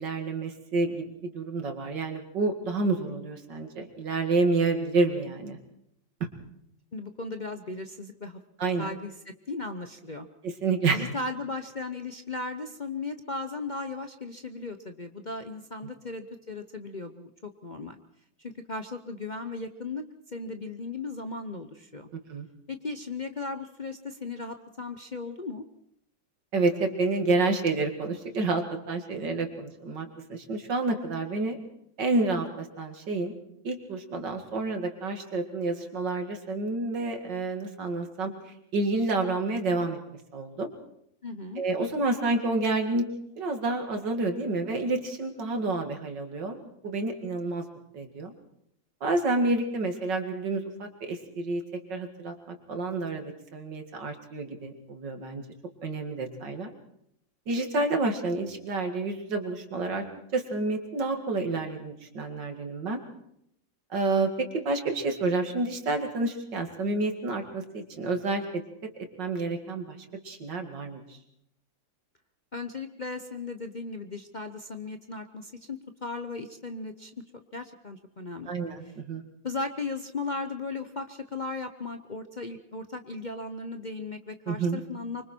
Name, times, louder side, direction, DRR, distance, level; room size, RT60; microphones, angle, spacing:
voice 1, 0.0-5.6 8.6-8.9 10.4-11.1 22.3-22.5 26.5-31.6 32.0-33.3 33.6-38.3 38.7-40.0 40.3-40.7 41.6-43.1 43.4-47.6 47.9-48.3 49.0-51.6 51.9-55.4 55.8-56.7 57.5-60.0 60.3-63.0 63.9-68.6 69.2-70.0 70.2-71.0 78.5-79.2 84.5-84.8, right 3 dB, 65° right, 5 dB, 2.8 m, -29 dB
voice 2, 6.9-8.4 8.8-10.3 10.9-18.0 18.4-22.1 22.7-25.6 41.2-41.6 72.5-78.5 79.4-85.2, left 3 dB, 40° left, 6 dB, 0.6 m, -36 dB
25.0 x 24.5 x 4.5 m, 0.74 s
omnidirectional pair, 2.0 m